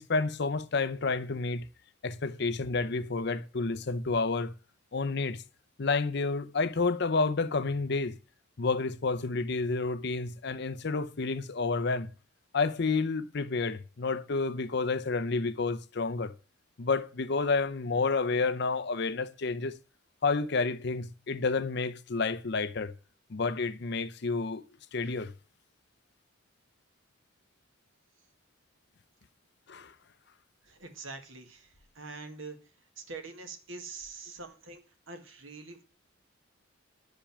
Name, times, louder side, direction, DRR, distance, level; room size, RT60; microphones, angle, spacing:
voice 1, 0.0-1.7 2.0-4.5 4.9-5.4 5.8-8.2 8.6-12.1 12.5-16.3 16.8-19.8 20.2-22.9 23.3-24.6 24.9-25.3 29.7-29.9, left 4 dB, 55° left, 0.6 m, -30 dB
voice 2, 30.6-32.6 33.0-35.8, right 3 dB, 70° right, 1.8 m, -44 dB
10.0 x 5.2 x 7.1 m
head